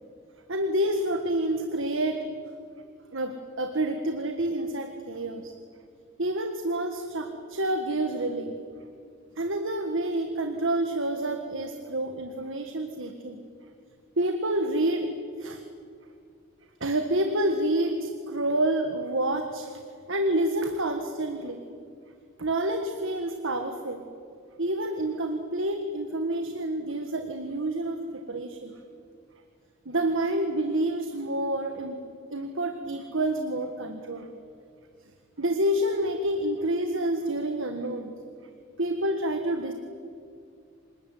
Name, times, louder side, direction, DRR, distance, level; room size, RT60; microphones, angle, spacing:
voice 1, 0.5-2.2 3.1-5.5 6.2-8.5 9.4-13.4 14.2-15.1 15.4-15.6 16.8-19.7 20.1-21.6 22.4-24.0 24.6-28.8 29.8-32.0 32.3-34.3 35.4-38.1 38.8-39.7, right 1 dB, 60° right, 6 dB, 1.7 m, -28 dB
27.0 x 20.0 x 9.5 m, 2.4 s
head